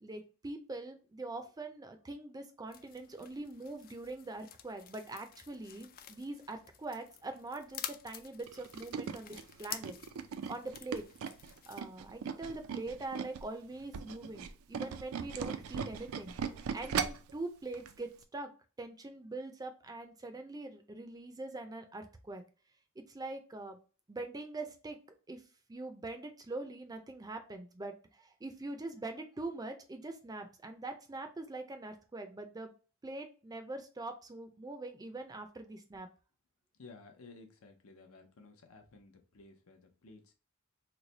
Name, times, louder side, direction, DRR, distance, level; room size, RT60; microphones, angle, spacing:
voice 1, 0.0-10.0 10.5-11.0 11.7-16.4 16.7-18.5 18.8-22.4 23.1-23.8 24.1-25.0 25.3-25.4 25.7-32.7 33.0-36.1, right 2 dB, 20° right, 6 dB, 0.4 m, -43 dB
sound 1, 2.7-11.8, left 10 dB, 45° left, 0.3 m, -49 dB
Tools, 8.5-13.4 13.8-17.3 17.7-17.9 18.2-18.3, right 6 dB, 75° right, 0.4 m, -38 dB
voice 2, 36.8-40.3, left 3 dB, 80° left, 4 dB, 0.8 m, -55 dB
3.2 x 2.1 x 3.9 m, 0.35 s
head